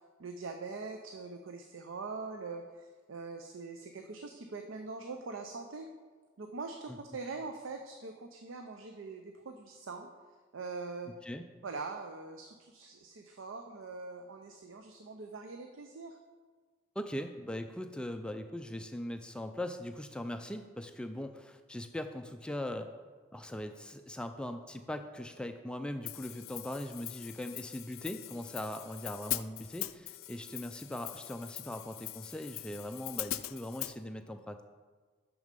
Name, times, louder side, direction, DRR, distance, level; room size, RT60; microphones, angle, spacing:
voice 1, 0.2-5.9 6.4-10.1 10.5-11.1 11.6-16.2, right 4 dB, 70° right, 5 dB, 0.5 m, -43 dB
voice 2, 17.0-22.9 23.3-34.6, left 1 dB, 5° left, 6 dB, 0.3 m, -40 dB
Hi-hat, 26.1-34.0, left 16 dB, 85° left, 0.3 m, -42 dB
6.4 x 6.2 x 5.2 m, 1.4 s
head